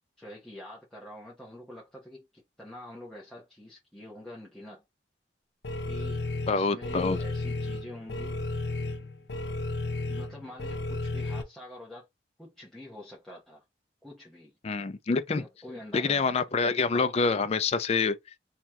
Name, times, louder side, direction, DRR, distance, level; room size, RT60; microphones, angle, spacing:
voice 1, 0.2-4.8 5.9-8.6 10.1-12.1 12.4-13.6 14.0-14.5 15.3-16.4, left 1 dB, 5° left, 1.0 m, -46 dB
sound 1, 5.6-11.4, left 2 dB, 75° left, 0.7 m, -33 dB
voice 2, 6.5-7.2 14.6-15.5 15.9-18.1, left 4 dB, 35° left, 0.4 m, -26 dB
3.1 x 2.9 x 3.5 m
head